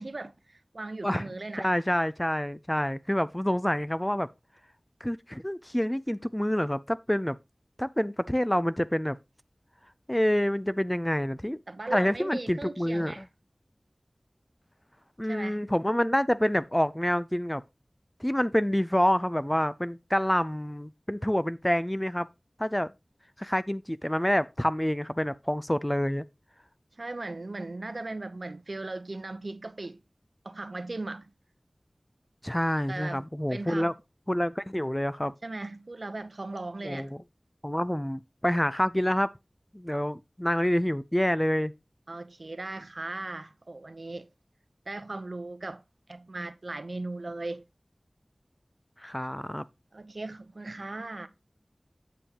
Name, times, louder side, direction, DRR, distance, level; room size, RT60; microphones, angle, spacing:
voice 1, 0.0-1.7 11.7-13.3 15.2-15.6 27.0-30.0 30.4-31.3 32.9-33.9 35.4-37.1 42.1-44.3 44.9-45.8 46.1-47.6 49.9-51.3, right 2 dB, 70° right, 0.8 m, -38 dB
voice 2, 1.6-4.3 5.0-7.4 7.8-9.2 10.1-11.6 11.9-13.2 15.2-17.6 18.2-22.3 22.6-22.9 23.4-26.2 32.4-33.9 34.3-35.3 36.8-37.2 37.6-39.3 39.7-41.7 49.0-49.6, equal, 15° left, 0.5 m, -27 dB
8.4 x 7.7 x 2.9 m
wide cardioid pair, 55°, 0 cm